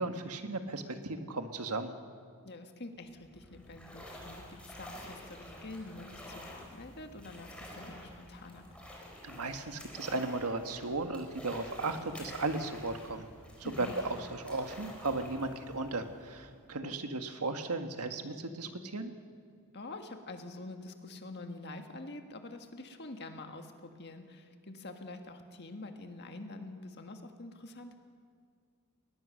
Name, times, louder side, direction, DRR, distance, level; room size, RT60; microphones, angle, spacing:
voice 1, 0.0-1.9 9.2-13.3 13.6-19.1, right 3 dB, 85° right, 7 dB, 1.6 m, -36 dB
voice 2, 2.4-8.7 13.6-13.9 16.8-16.9 19.7-27.9, left 2 dB, 50° left, 5 dB, 1.8 m, -46 dB
sound 1, 3.0-16.8, left 1 dB, 5° left, 4.0 m, -49 dB
21.5 x 20.0 x 6.5 m, 2.2 s
head